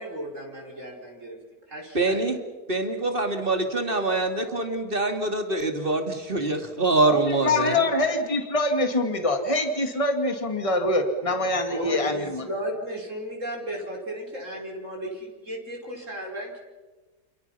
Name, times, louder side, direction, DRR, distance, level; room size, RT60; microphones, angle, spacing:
voice 1, 0.0-1.4 1.7-2.2 7.7-7.9 11.4-16.6, equal, 50° right, -1 dB, 5.5 m, -35 dB
voice 2, 1.9-2.4 2.7-7.8, right 2 dB, 35° right, 5 dB, 2.9 m, -24 dB
voice 3, 7.1-12.5, left 2 dB, 20° left, 6 dB, 2.4 m, -25 dB
29.0 x 29.0 x 5.8 m, 1.3 s
omnidirectional pair, 1.7 m